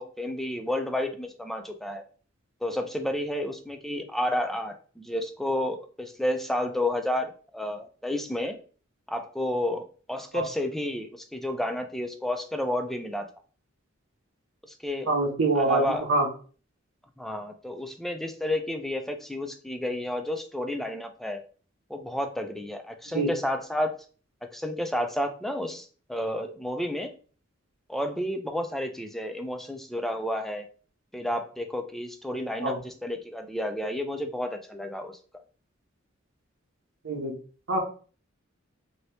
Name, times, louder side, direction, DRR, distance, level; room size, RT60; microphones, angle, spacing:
voice 1, 0.0-2.0 2.6-8.6 9.1-13.3 14.6-15.1 15.6-16.1 17.2-21.4 21.9-23.9 24.5-27.1 27.9-30.6 31.1-35.2, left 1 dB, ahead, 5 dB, 0.3 m, -31 dB
voice 2, 15.1-16.3 23.1-23.3 32.6-32.8 37.0-37.3 37.7-37.8, right 2 dB, 65° right, 0 dB, 0.8 m, -25 dB
2.9 x 2.7 x 3.2 m, 0.40 s
head